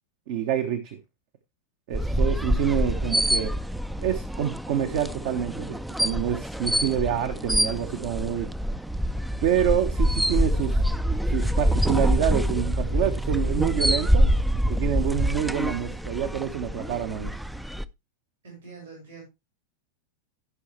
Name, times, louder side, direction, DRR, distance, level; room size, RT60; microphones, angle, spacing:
voice 1, 0.3-1.0 1.9-3.5 4.0-8.5 9.4-10.8 11.3-14.3 14.7-17.3, right 9 dB, 50° right, 1.0 m, -27 dB
sound 1, 1.9-17.8, equal, 5° right, 0.4 m, -25 dB
voice 2, 18.4-19.2, right 4 dB, 65° right, 4.4 m, -44 dB
14.5 x 5.6 x 3.1 m
figure-of-eight pair, 90°, 0 cm